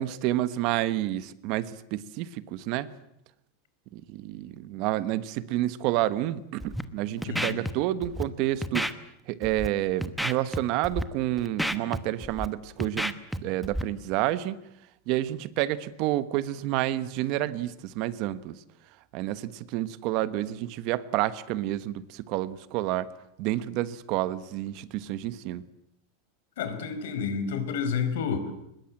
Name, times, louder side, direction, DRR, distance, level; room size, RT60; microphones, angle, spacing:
voice 1, 0.0-2.9 3.9-8.9 9.3-14.6 15.1-18.6 19.1-23.1 23.4-25.6, right 14 dB, 45° right, 15 dB, 1.1 m, -29 dB
Scratching (performance technique), 6.6-6.8 7.2-7.7 8.0-8.2 8.6-8.9 9.4-9.7 10.0-10.6 10.8-11.0 11.4-12.5 12.8-13.4 13.6-13.8, equal, ahead, 1.0 m, -30 dB
voice 2, 7.2-7.6 26.6-28.5, left 6 dB, 80° left, 10 dB, 4.8 m, -30 dB
24.0 x 21.0 x 8.8 m, 0.79 s
supercardioid pair, 165°, 0 cm